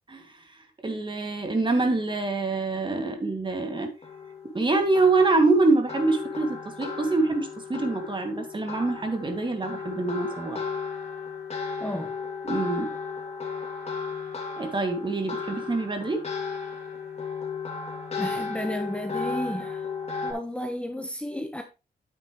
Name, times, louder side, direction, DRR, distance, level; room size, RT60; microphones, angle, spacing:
voice 1, 0.8-3.9 4.5-10.6 12.4-12.9 14.6-16.2, right 3 dB, 30° right, 2.4 m, -25 dB
sound 1, 3.8-20.3, left 5 dB, 40° left, 2.8 m, -35 dB
voice 2, 11.8-12.1 18.2-19.8 20.2-21.6, left 1 dB, 5° left, 1.3 m, -32 dB
9.3 x 8.1 x 3.2 m
cardioid pair, 90°, 16 cm